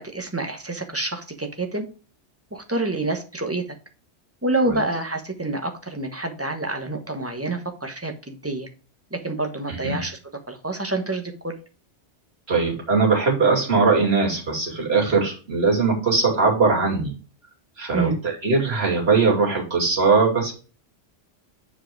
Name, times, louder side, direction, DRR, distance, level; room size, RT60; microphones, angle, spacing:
voice 1, 0.0-1.9 2.5-3.6 4.4-8.7 9.1-10.2 10.5-11.6 17.9-18.2, right 2 dB, 15° right, 5 dB, 1.0 m, -27 dB
voice 2, 12.5-17.1 17.8-20.5, right 4 dB, 60° right, -2 dB, 2.9 m, -20 dB
7.6 x 4.8 x 4.5 m, 0.36 s
omnidirectional pair, 1.2 m